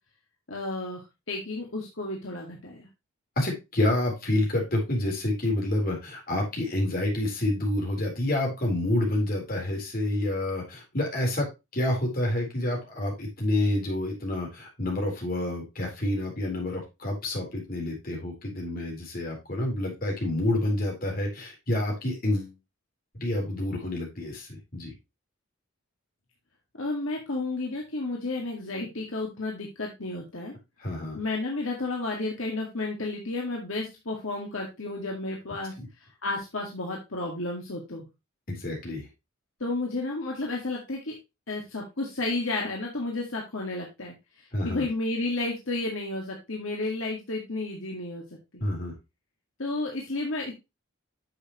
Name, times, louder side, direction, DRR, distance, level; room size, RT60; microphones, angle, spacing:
voice 1, 0.5-2.9 26.8-30.5 31.2-35.7 36.2-38.1 39.6-41.1 41.5-44.1 44.6-48.2 48.5-48.6 49.6-50.5, left 2 dB, 70° left, -1 dB, 2.1 m, -32 dB
voice 2, 3.4-11.5 11.7-22.5 23.1-24.9 30.8-31.2 35.8-35.9 38.5-39.1 44.5-44.8 48.6-48.9, left 1 dB, 45° left, -1 dB, 4.0 m, -28 dB
10.0 x 6.7 x 3.1 m, 0.24 s
head